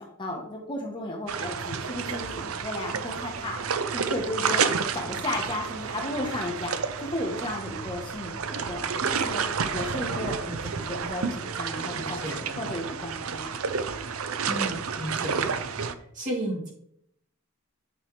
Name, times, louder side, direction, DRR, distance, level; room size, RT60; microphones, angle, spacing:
voice 1, 0.0-3.6 3.9-4.7 4.9-8.9 9.1-9.4 9.7-13.5, left 1 dB, 20° left, 1 dB, 1.1 m, -34 dB
sound 1, 1.3-15.9, right 6 dB, 80° right, 0.6 m, -30 dB
voice 2, 11.9-12.6 14.5-15.6 15.9-16.7, right 1 dB, 35° right, -4 dB, 2.6 m, -33 dB
9.4 x 5.6 x 3.2 m, 0.70 s
head